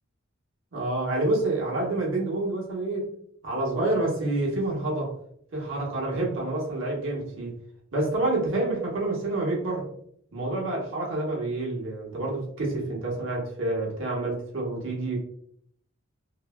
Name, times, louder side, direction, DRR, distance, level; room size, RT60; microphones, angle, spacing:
voice 1, 0.7-3.1 3.4-5.1 5.5-7.5 7.9-9.9 10.3-15.2, right 2 dB, 70° right, -3 dB, 1.0 m, -28 dB
3.1 x 2.1 x 2.3 m, 0.66 s
head